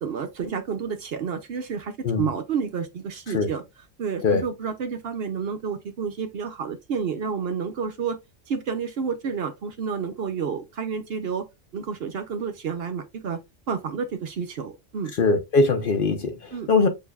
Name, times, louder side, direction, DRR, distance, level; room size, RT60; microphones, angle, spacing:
voice 1, 0.0-3.6 4.0-8.2 8.5-11.5 11.7-13.4 13.7-15.1 16.5-16.7, right 6 dB, 60° right, 0.8 m, -30 dB
voice 2, 15.2-16.9, left 3 dB, 55° left, 0.7 m, -21 dB
6.6 x 2.7 x 2.3 m
omnidirectional pair, 1.3 m